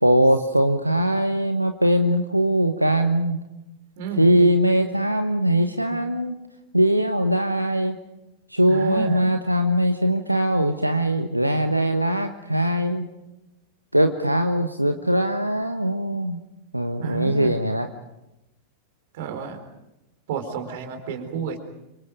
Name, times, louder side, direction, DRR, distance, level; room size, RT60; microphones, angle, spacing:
voice 1, 0.0-3.4 4.2-6.3 6.7-8.0 8.5-13.1 13.9-16.4 16.7-17.9, right 1 dB, 90° right, 7 dB, 1.1 m, -21 dB
voice 2, 4.0-4.3 8.7-9.2 17.0-17.6 19.1-19.6 20.3-21.6, right 7 dB, 55° right, 8 dB, 4.1 m, -31 dB
30.0 x 26.0 x 5.2 m, 0.94 s
figure-of-eight pair, 90°, 0 cm